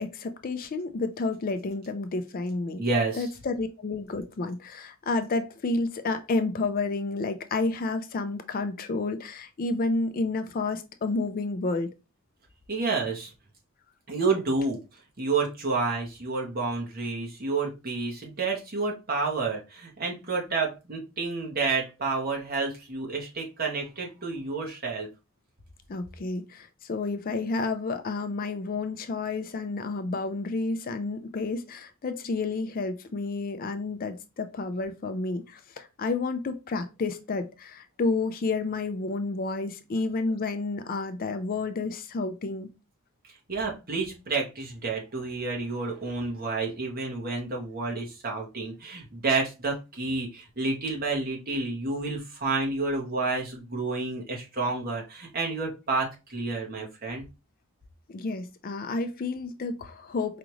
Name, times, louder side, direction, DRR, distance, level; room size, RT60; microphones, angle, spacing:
voice 1, 0.0-2.8 3.1-11.9 25.9-42.7 58.1-60.4, left 3 dB, 40° left, 0.4 m, -30 dB
voice 2, 2.8-3.3 12.7-13.3 14.1-14.8 15.2-25.1 43.5-57.2, right 3 dB, 45° right, 1.2 m, -30 dB
4.9 x 2.5 x 3.0 m
head